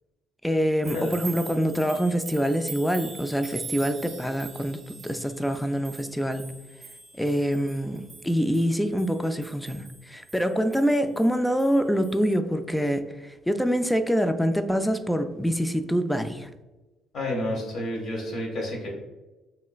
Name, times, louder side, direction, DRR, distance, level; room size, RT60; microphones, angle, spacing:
voice 1, 0.4-6.5 7.2-16.5, equal, 5° left, 9 dB, 0.3 m, -25 dB
sound 1, 0.8-11.8 12.0-12.2, right 5 dB, 40° right, 0.9 m, -43 dB
voice 2, 17.1-18.9, left 1 dB, 55° left, -2 dB, 1.4 m, -30 dB
3.1 x 2.9 x 2.3 m, 1.1 s
supercardioid pair, 80°, 0 cm